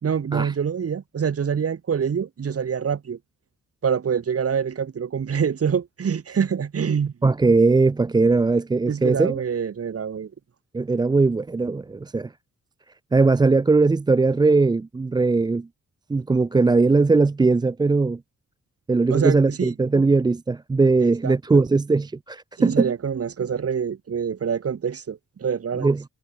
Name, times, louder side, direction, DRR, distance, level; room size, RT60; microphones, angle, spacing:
voice 1, 0.0-3.2 3.8-7.1 8.9-10.3 19.1-19.7 21.2-21.6 22.6-25.9, right 7 dB, 50° right, 4.6 m, -25 dB
voice 2, 7.2-9.4 10.7-12.3 13.1-15.7 16.1-18.2 18.9-22.9 25.8-26.0, right 3 dB, 15° right, 0.3 m, -20 dB
wide cardioid pair, 175°, 30 cm